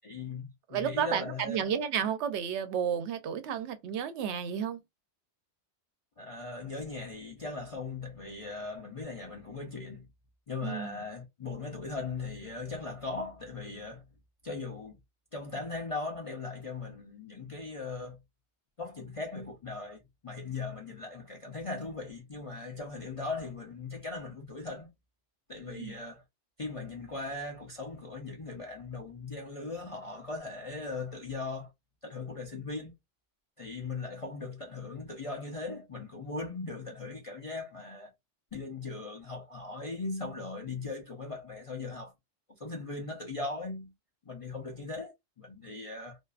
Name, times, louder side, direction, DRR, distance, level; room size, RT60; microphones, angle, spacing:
voice 1, 0.0-1.7 6.2-10.1 10.5-14.0 14.4-15.0 15.3-18.2 18.8-24.9 25.5-26.2 26.6-31.7 32.0-32.9 33.6-38.1 38.5-42.1 42.6-43.9 44.2-46.2, left 3 dB, 40° left, 0.5 m, -39 dB
voice 2, 0.7-4.8 10.6-11.0 25.7-25.9, right 8 dB, 80° right, 0.9 m, -32 dB
2.5 x 2.3 x 2.3 m
omnidirectional pair, 1.2 m